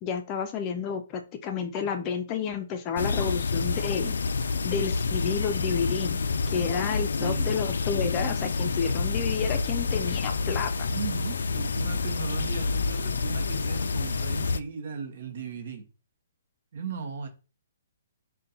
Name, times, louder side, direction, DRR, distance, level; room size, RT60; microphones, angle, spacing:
voice 1, 0.0-4.1 4.6-10.7, left 6 dB, 20° left, 0.5 m, -31 dB
sound 1, 3.0-14.6, left 4 dB, 85° left, 0.3 m, -28 dB
voice 2, 7.2-7.6 10.9-15.8 16.7-17.3, right 5 dB, 55° right, 0.9 m, -37 dB
4.0 x 2.2 x 3.9 m
hypercardioid pair, 165°, 0 cm